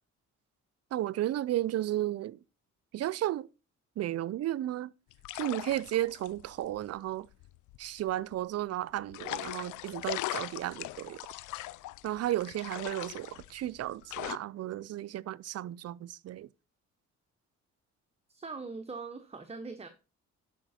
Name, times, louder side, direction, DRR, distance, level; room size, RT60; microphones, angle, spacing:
voice 1, 0.9-2.4 2.9-3.5 4.0-4.9 5.3-7.3 7.8-11.2 12.0-16.5, right 13 dB, 55° right, 0.5 m, -33 dB
sound 1, 5.1-8.3 9.1-14.4, left 17 dB, 80° left, 0.5 m, -40 dB
voice 2, 18.3-19.9, right 4 dB, 20° right, 0.9 m, -41 dB
11.5 x 5.0 x 4.2 m
cardioid pair, 90°, 30 cm